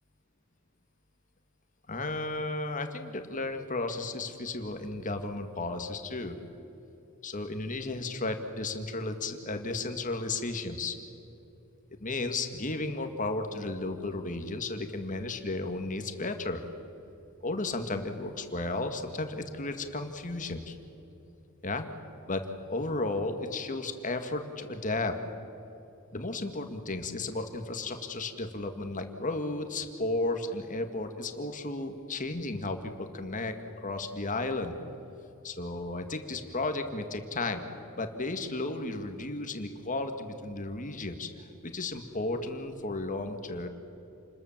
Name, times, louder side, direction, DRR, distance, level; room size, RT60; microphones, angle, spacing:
voice 1, 1.9-6.4 7.2-11.0 12.0-16.6 17.4-20.7 21.6-21.9 22.3-25.2 26.1-33.5 33.8-34.7 35.4-37.6 38.0-41.3 41.6-43.7, left 2 dB, 35° left, 6 dB, 1.9 m, -34 dB
29.0 x 21.0 x 7.4 m, 2.9 s
head